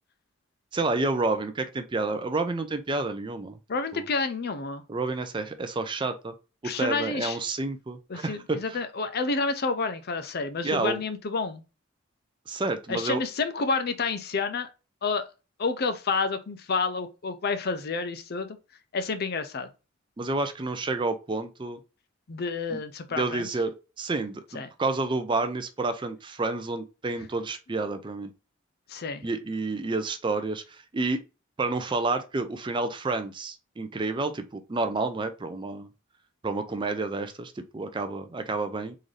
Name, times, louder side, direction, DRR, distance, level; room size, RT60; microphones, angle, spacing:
voice 1, 0.7-3.6 3.9-4.0 4.9-6.3 6.6-8.8 10.6-11.0 12.5-13.2 20.2-21.8 22.7-22.8 23.1-23.7 24.0-28.3 29.2-31.2 31.6-35.9 36.4-39.0, right 3 dB, 25° right, 0.4 m, -29 dB
voice 2, 3.7-4.8 6.6-7.4 8.1-11.6 12.9-14.7 15.0-15.2 15.6-18.6 18.9-19.7 22.3-23.5 24.5-24.7 28.9-29.2, left 4 dB, 50° left, 0.5 m, -29 dB
3.7 x 2.6 x 3.2 m
head